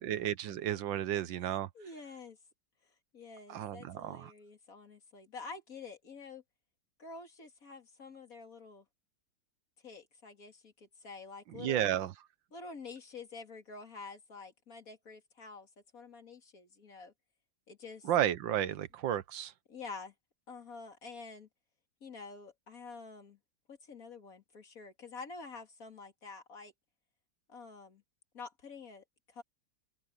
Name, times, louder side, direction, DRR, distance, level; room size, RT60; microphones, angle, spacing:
voice 1, 0.0-1.7 3.5-4.3 11.5-12.1 18.0-19.5, right 11 dB, 85° right, 1.7 m, -33 dB
voice 2, 1.5-2.4 3.1-6.4 7.0-8.8 9.8-11.9 12.5-17.1 17.7-18.1 19.7-20.1 20.5-21.5 22.0-23.4 23.7-26.7 27.5-28.0 28.3-29.0 29.3-29.4, left 4 dB, 50° left, 2.9 m, -48 dB
open air
omnidirectional pair, 2.0 m